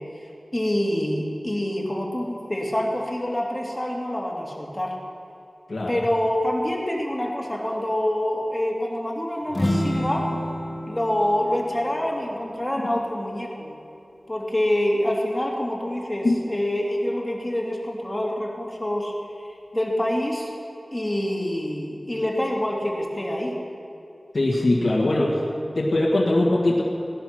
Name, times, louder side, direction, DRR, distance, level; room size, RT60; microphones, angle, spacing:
voice 1, 0.5-5.0 5.9-10.3 10.9-13.8 14.3-20.5 20.9-23.6 25.2-25.3, left 1 dB, 20° left, -2 dB, 2.8 m, -26 dB
voice 2, 5.7-6.0 16.2-16.4 24.3-25.3 25.8-26.8, left 2 dB, 75° left, -4 dB, 1.8 m, -21 dB
sound 1, 9.5-13.2, equal, 35° left, 2.2 m, -29 dB
17.0 x 11.5 x 6.1 m, 2.6 s
wide cardioid pair, 60°, 0 cm